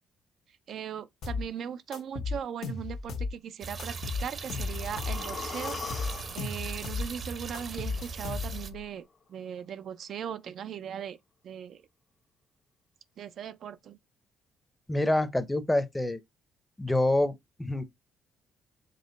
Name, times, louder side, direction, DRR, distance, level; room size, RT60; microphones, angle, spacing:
voice 1, 0.7-5.8 6.3-11.2 11.4-11.8 13.2-14.0, right 8 dB, 65° right, 0.4 m, -39 dB
sound 1, 1.2-1.5 1.9-3.3 3.8-5.2 5.7-7.1 7.5-8.8, left 4 dB, 75° left, 1.1 m, -34 dB
sound 2, 3.6-8.7, right 4 dB, 50° right, 0.7 m, -39 dB
sound 3, 4.2-8.2 8.5-8.6, left 5 dB, 40° left, 0.9 m, -42 dB
voice 2, 14.9-16.2 16.8-17.8, left 1 dB, 10° left, 0.6 m, -27 dB
5.2 x 2.1 x 3.8 m
cardioid pair, 90°, 0 cm